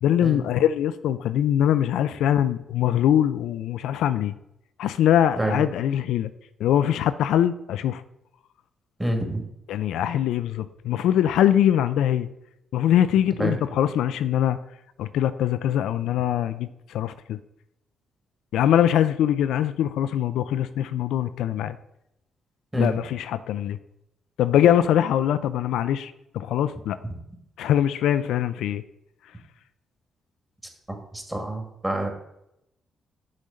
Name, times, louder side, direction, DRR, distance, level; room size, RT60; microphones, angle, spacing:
voice 1, 0.0-4.3 4.8-6.3 6.6-8.0 9.7-12.3 12.7-14.6 15.0-17.4 18.5-21.8 22.8-23.8 24.4-27.0 27.6-28.8, left 10 dB, 75° left, 12 dB, 0.3 m, -22 dB
voice 2, 9.0-9.4 13.4-13.6 22.7-22.9 30.9-32.1, right 1 dB, 15° right, 2 dB, 2.1 m, -27 dB
6.3 x 4.2 x 6.3 m, 0.81 s
hypercardioid pair, 45°, 0 cm